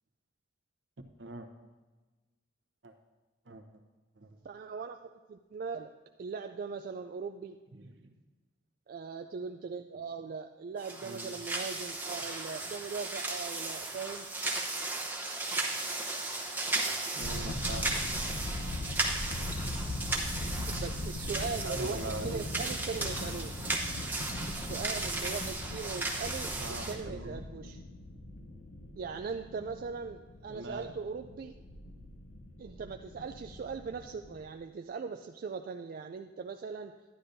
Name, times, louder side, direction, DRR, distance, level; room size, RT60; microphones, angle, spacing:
voice 1, 4.4-5.9 6.2-7.6 8.9-14.3 20.7-23.7 24.5-27.8 29.0-31.5 32.6-37.0, right 5 dB, 50° right, 5 dB, 0.3 m, -40 dB
voice 2, 7.7-8.1 11.0-11.3 17.1-18.0 21.6-22.5 26.6-27.4 30.5-30.9, right 2 dB, 70° right, 5 dB, 0.9 m, -42 dB
sound 1, 10.8-26.9, right 2 dB, 10° right, 0.8 m, -35 dB
sound 2, 17.2-34.4, left 1 dB, 90° left, 0.8 m, -40 dB
11.5 x 10.0 x 2.7 m, 1.2 s
head